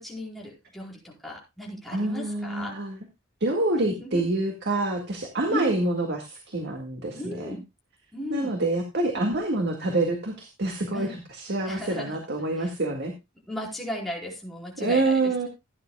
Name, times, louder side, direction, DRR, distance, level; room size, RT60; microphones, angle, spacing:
voice 1, 0.0-2.7 3.8-4.3 5.5-5.8 7.1-7.6 8.1-8.5 10.9-11.2 11.6-12.2 12.6-12.7 13.5-15.5, left 1 dB, ahead, -3 dB, 4.6 m, -35 dB
voice 2, 1.9-3.0 3.4-7.6 8.3-13.1 14.8-15.5, right 2 dB, 55° right, 4 dB, 1.8 m, -27 dB
16.5 x 9.9 x 2.2 m, 0.23 s
head